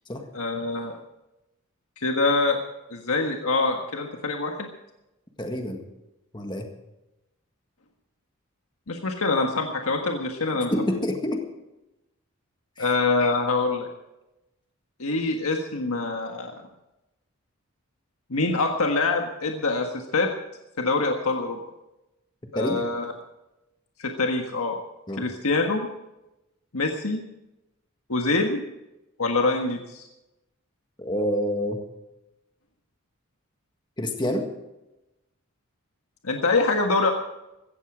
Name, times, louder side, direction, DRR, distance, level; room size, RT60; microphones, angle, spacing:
voice 1, 0.3-0.9 2.0-2.6 2.9-4.7 8.9-10.7 12.8-13.9 15.0-16.5 18.3-20.3 20.8-21.6 22.5-23.1 24.0-24.8 25.2-25.9 26.7-27.2 28.1-28.6 29.2-30.1 36.2-37.1, left 3 dB, 85° left, 3 dB, 1.6 m, -25 dB
voice 2, 5.4-5.8 6.3-6.7 10.7-11.4 12.8-13.0 22.6-22.8 25.1-25.3 31.0-31.8 34.0-34.5, left 1 dB, 20° left, 3 dB, 1.7 m, -27 dB
16.5 x 14.5 x 5.0 m, 0.94 s
head